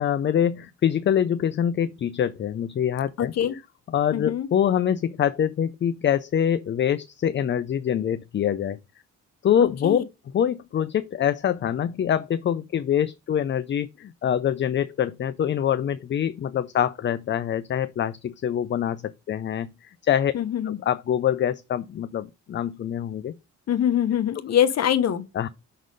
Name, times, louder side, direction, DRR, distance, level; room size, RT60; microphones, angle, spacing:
voice 1, 0.0-3.3 3.9-8.8 9.4-10.0 10.3-20.3 20.6-23.3 25.3-25.5, left 9 dB, 40° left, 0.5 m, -25 dB
voice 2, 3.2-3.5 4.1-4.5 9.8-10.0 20.3-20.8 23.7-25.2, left 10 dB, 60° left, 1.0 m, -23 dB
6.2 x 4.0 x 5.3 m
cardioid pair, 90°, 30 cm